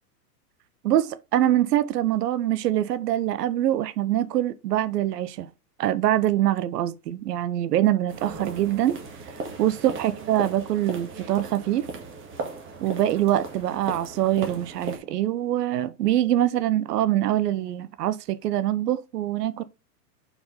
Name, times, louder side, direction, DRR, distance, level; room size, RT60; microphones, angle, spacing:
voice 1, 0.8-5.5 5.8-9.0 9.6-11.9 12.8-19.6, right 12 dB, 75° right, 0.8 m, -24 dB
sound 1, 8.1-15.0, right 4 dB, 25° right, 1.8 m, -37 dB
5.5 x 4.8 x 5.0 m
hypercardioid pair, 120°, 48 cm